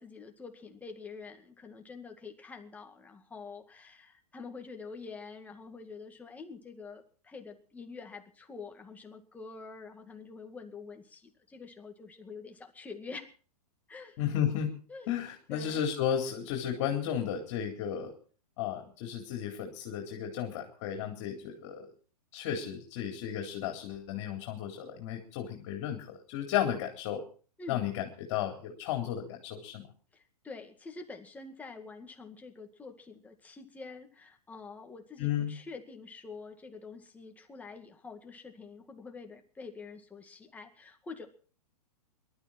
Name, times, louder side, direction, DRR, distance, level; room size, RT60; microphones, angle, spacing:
voice 1, 0.0-13.3 13.9-14.2 14.9-15.1 15.5-15.8 27.6-27.8 30.1-41.3, left 4 dB, 10° left, 3 dB, 2.0 m, -46 dB
voice 2, 14.2-14.7 15.1-18.1 18.6-21.9 22.3-27.2 27.7-29.8 35.2-35.5, left 9 dB, 40° left, 2 dB, 4.0 m, -33 dB
22.0 x 12.5 x 4.4 m, 0.40 s
hypercardioid pair, 155°, 20 cm